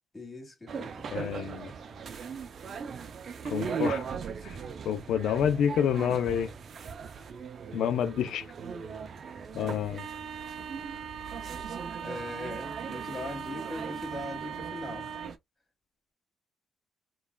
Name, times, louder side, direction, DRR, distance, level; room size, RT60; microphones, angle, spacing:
voice 1, 0.1-1.4 12.0-15.1, left 1 dB, 20° left, 1.7 m, -40 dB
sound 1, 0.7-15.4, right 6 dB, 55° right, 0.4 m, -38 dB
voice 2, 1.1-1.7 3.4-4.0 4.4-4.6 4.8-6.5 7.7-8.5 9.5-10.1, left 8 dB, 75° left, 0.4 m, -28 dB
3.1 x 2.3 x 2.2 m
cardioid pair, 90°, 0 cm